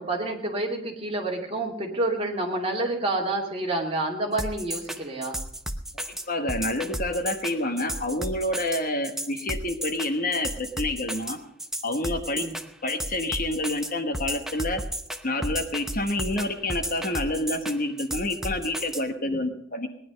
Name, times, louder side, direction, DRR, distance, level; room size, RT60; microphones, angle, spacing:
voice 1, 0.0-5.4 12.3-12.6 19.2-19.4, right 2 dB, 30° right, 0 dB, 2.7 m, -28 dB
sound 1, 4.4-19.0, right 1 dB, ahead, 0.7 m, -33 dB
voice 2, 6.1-11.4 11.8-12.5 12.8-14.8 15.2-19.9, left 1 dB, 45° left, 7 dB, 1.3 m, -28 dB
18.5 x 10.5 x 5.2 m, 0.69 s
head